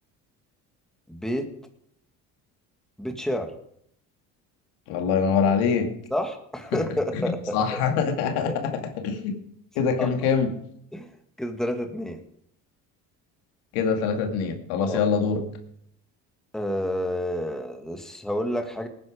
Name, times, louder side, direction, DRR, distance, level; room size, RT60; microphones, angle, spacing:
voice 1, 1.1-1.5 3.0-3.5 6.1-7.8 8.5-8.6 10.0-10.1 10.9-11.1 11.4-12.2 14.8-15.0 16.5-18.9, equal, ahead, 5 dB, 1.9 m, -29 dB
voice 2, 4.9-5.9 6.7-6.8 7.1-9.4 9.8-10.5 13.7-15.4, left 6 dB, 85° left, 5 dB, 2.3 m, -24 dB
19.0 x 9.8 x 5.1 m, 0.72 s
supercardioid pair, 100°, 37 cm